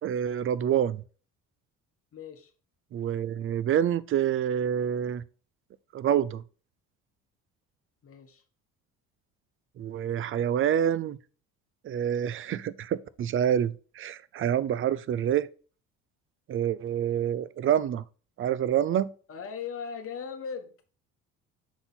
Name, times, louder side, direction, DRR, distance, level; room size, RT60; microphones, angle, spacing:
voice 1, 0.0-1.0 2.9-5.2 5.9-6.4 9.8-11.2 11.8-15.5 16.5-18.0 18.4-19.1, right 9 dB, 40° right, 0.4 m, -27 dB
voice 2, 2.1-2.5 8.0-8.4 19.3-20.7, left 6 dB, 45° left, 1.1 m, -38 dB
6.1 x 4.0 x 3.9 m
cardioid pair, 95°, 31 cm